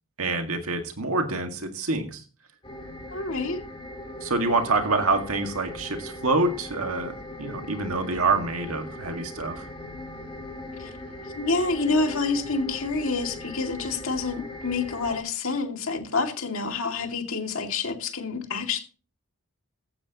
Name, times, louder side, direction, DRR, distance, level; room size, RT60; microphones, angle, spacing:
voice 1, 0.2-2.2 4.2-9.6, right 3 dB, 70° right, 5 dB, 1.9 m, -26 dB
sound 1, 2.6-15.2, left 2 dB, 25° left, 2.5 m, -39 dB
voice 2, 3.1-3.6 10.8-10.9 11.3-18.8, left 3 dB, 65° left, 3 dB, 2.3 m, -28 dB
15.5 x 9.9 x 3.0 m, 0.38 s
head